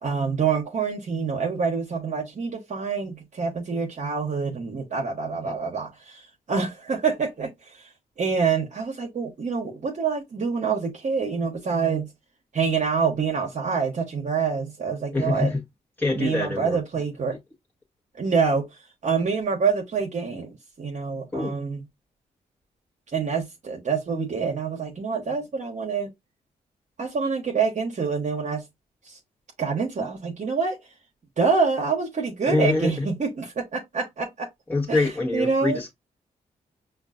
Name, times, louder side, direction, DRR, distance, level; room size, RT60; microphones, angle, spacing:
voice 1, 0.0-7.8 8.2-12.1 12.5-15.5 16.1-17.4 18.2-18.7 19.0-21.8 23.1-26.1 27.0-28.6 29.0-29.2 29.6-30.8 31.4-34.5 34.9-35.8, right 5 dB, 50° right, 0.9 m, -26 dB
voice 2, 15.1-15.6 16.0-16.8 17.3-17.4 21.3-21.5 32.5-33.1 34.7-35.9, left 2 dB, 10° left, 1.0 m, -24 dB
5.1 x 2.3 x 2.4 m
cardioid pair, 60°, 16 cm